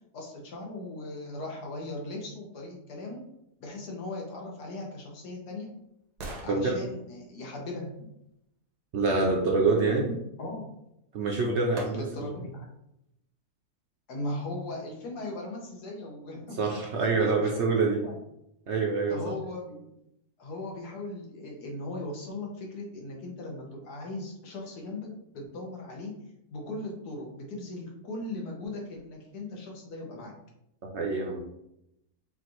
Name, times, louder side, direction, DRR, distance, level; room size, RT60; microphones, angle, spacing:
voice 1, 0.1-3.2 3.6-5.7 6.4-8.1 10.4-10.7 11.9-12.7 14.1-16.8 17.2-18.1 19.1-19.9 20.4-26.1 26.5-30.3, left 2 dB, 80° left, -1 dB, 1.6 m, -38 dB
sound 1, 4.9-8.8 10.9-11.0 11.8-12.4 12.9-13.0, right 1 dB, 85° right, 1.5 m, -46 dB
voice 2, 8.9-10.1 11.1-12.3 16.6-18.0 18.7-19.2 30.9-31.4, right 3 dB, 60° right, 0 dB, 0.8 m, -26 dB
5.7 x 2.5 x 3.0 m, 0.81 s
omnidirectional pair, 1.7 m